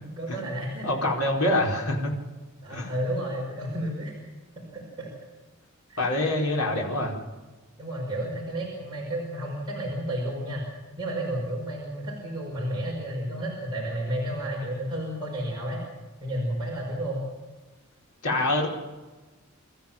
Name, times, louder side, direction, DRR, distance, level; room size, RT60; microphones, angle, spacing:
voice 1, 0.2-1.1 2.6-4.1 4.6-5.1 5.9-6.1 7.8-10.7 11.0-15.8 16.2-17.2, right 1 dB, 20° right, -4 dB, 5.5 m, -32 dB
voice 2, 0.8-2.1 2.7-2.9 6.0-7.1 18.2-18.7, left 1 dB, 80° left, -1 dB, 4.8 m, -25 dB
27.5 x 14.5 x 7.4 m, 1.2 s
head